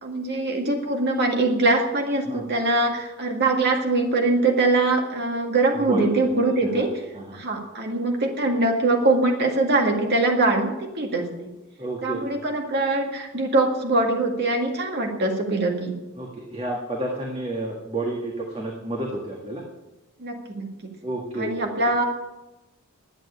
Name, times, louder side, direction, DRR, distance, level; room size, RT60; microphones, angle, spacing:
voice 1, 0.0-6.9 7.3-11.3 12.0-15.9 20.2-20.7 21.4-22.0, right 2 dB, 50° right, 2 dB, 2.0 m, -22 dB
voice 2, 5.8-6.9 7.1-7.4 11.8-12.2 16.2-19.6 21.0-21.8, right 1 dB, 30° right, -1 dB, 1.8 m, -30 dB
11.5 x 9.1 x 8.5 m, 0.99 s
head